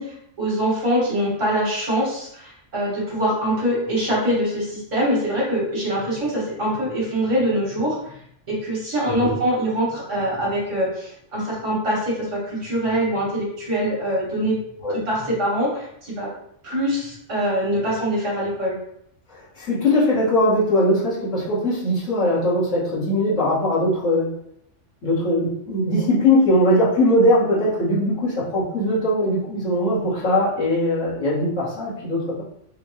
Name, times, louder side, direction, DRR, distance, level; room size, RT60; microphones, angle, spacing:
voice 1, 0.0-8.2 8.5-14.6 15.1-16.3 16.6-18.7, equal, 75° right, -6 dB, 2.5 m, -24 dB
voice 2, 19.3-24.3 25.0-32.4, left 1 dB, 70° left, -9 dB, 2.2 m, -20 dB
6.2 x 2.6 x 3.1 m, 0.72 s
omnidirectional pair, 1.3 m